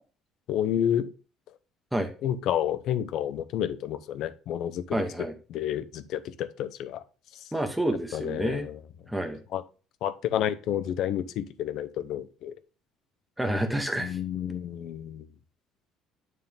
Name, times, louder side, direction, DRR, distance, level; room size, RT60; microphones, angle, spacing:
voice 1, 0.5-1.1 2.2-5.0 5.5-7.0 8.1-8.8 9.5-9.6 10.0-12.5 14.0-15.3, left 10 dB, 55° left, 13 dB, 0.7 m, -30 dB
voice 2, 4.9-5.4 7.5-8.7 9.1-9.4 13.4-14.2, right 1 dB, 5° right, 4 dB, 1.0 m, -29 dB
9.2 x 3.6 x 3.5 m, 0.34 s
cardioid pair, 155°, 0 cm